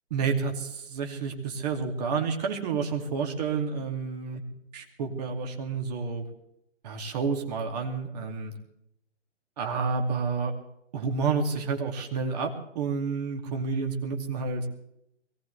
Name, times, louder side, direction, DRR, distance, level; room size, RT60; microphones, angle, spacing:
voice 1, 0.1-4.4 4.7-6.2 6.8-8.5 9.6-10.5 10.9-14.7, right 5 dB, 35° right, 3 dB, 2.6 m, -30 dB
22.0 x 18.0 x 3.4 m, 0.77 s
figure-of-eight pair, 135°, 36 cm